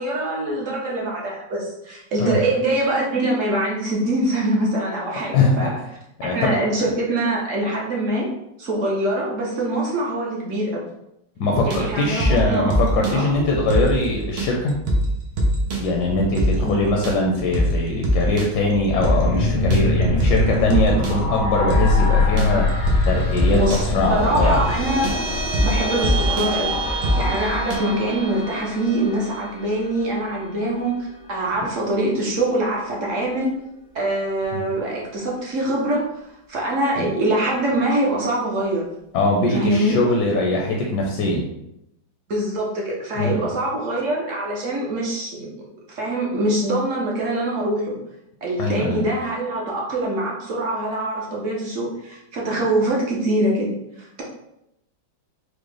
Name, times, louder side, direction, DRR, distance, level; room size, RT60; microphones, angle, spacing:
voice 1, 0.0-5.7 6.2-8.3 8.6-10.8 11.6-12.7 13.1-13.5 16.6-16.8 23.5-25.1 25.6-26.7 27.2-33.5 33.9-38.8 39.5-40.0 42.3-45.5 45.9-48.0 48.4-53.7 54.0-54.2, right 1 dB, 65° right, -3 dB, 0.8 m, -24 dB
voice 2, 5.3-5.7 6.2-6.6 11.4-14.7 15.8-22.7 23.0-24.6 34.5-34.6 37.0-37.1 39.1-41.5 43.2-43.5 48.6-49.0, left 2 dB, 75° left, 0 dB, 1.0 m, -21 dB
sound 1, 11.5-27.8, equal, 85° right, 1.6 m, -24 dB
sound 2, 18.9-29.3, left 2 dB, 90° left, 1.9 m, -24 dB
sound 3, 23.0-33.7, right 4 dB, 50° left, 0.6 m, -33 dB
4.9 x 2.1 x 3.2 m, 0.82 s
omnidirectional pair, 2.2 m